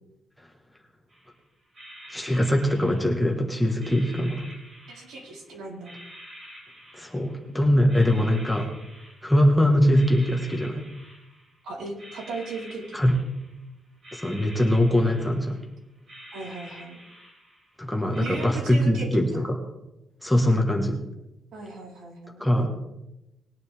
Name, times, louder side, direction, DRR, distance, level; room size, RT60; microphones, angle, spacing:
sound 1, 1.1-1.3 1.7-3.4 3.8-5.5 5.8-7.5 7.9-9.5 9.8-11.6 12.0-13.6 14.0-15.7 16.0-17.8 18.1-18.5, equal, 35° right, 6.2 m, -47 dB
voice 1, 2.1-4.5 6.9-8.7 9.2-10.8 12.9-13.1 14.1-15.6 17.8-19.6 20.2-21.0 22.4-22.7, left 1 dB, ahead, 1 dB, 1.5 m, -22 dB
voice 2, 4.9-5.9 11.6-13.0 16.3-17.0 18.2-19.4 21.5-22.7, right 3 dB, 80° right, -2 dB, 4.2 m, -37 dB
20.0 x 10.5 x 3.5 m, 0.92 s
cardioid pair, 180°, 0 cm